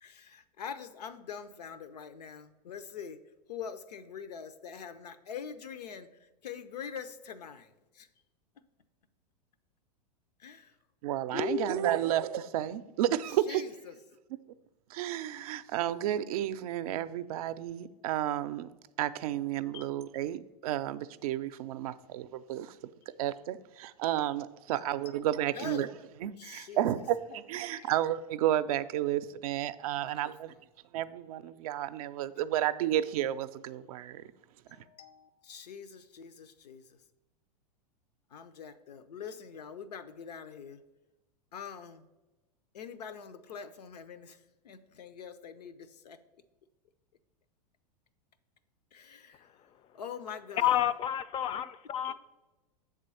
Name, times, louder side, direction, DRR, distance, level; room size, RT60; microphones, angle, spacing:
voice 1, 0.0-3.2 3.5-6.1 6.4-7.7 7.9-8.1 10.4-10.7 11.3-12.0 13.5-13.9 19.7-19.9 25.5-25.9 26.4-26.8 27.7-27.9 30.0-30.1 34.7-37.0 38.3-40.8 41.5-42.0 42.7-44.4 44.6-46.2 48.9-49.5 49.9-50.7 52.0-52.1, left 7 dB, 80° left, 11 dB, 0.6 m, -43 dB
voice 2, 11.0-13.6 14.9-18.7 19.0-22.8 23.2-25.9 26.2-30.5 30.9-34.2, right 12 dB, 65° right, 13 dB, 0.4 m, -32 dB
voice 3, 50.6-52.1, left 11 dB, 30° left, 15 dB, 0.4 m, -29 dB
7.4 x 3.7 x 5.5 m, 1.1 s
hypercardioid pair, 100°, 20 cm